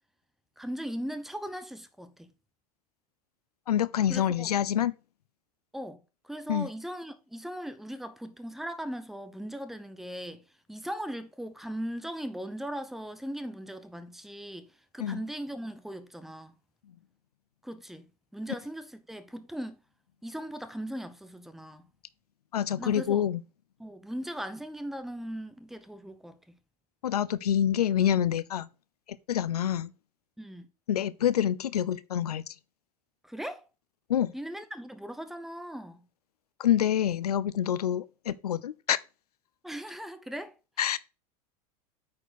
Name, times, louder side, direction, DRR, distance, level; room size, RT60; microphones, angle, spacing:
voice 1, 0.6-2.3 4.1-4.5 5.7-10.4 10.7-16.5 17.6-19.8 20.2-21.9 22.8-23.3 23.8-26.6 30.4-30.7 33.2-33.6 34.3-36.1 39.6-40.5 40.8-41.0, equal, ahead, 0.9 m, -39 dB
voice 2, 3.7-4.9 6.5-6.7 15.0-15.2 22.5-23.4 27.0-28.7 29.3-29.9 30.9-32.5 34.1-34.3 36.6-39.0 40.8-41.0, left 10 dB, 80° left, 0.5 m, -27 dB
8.4 x 4.5 x 4.3 m
hypercardioid pair, 80°, 20 cm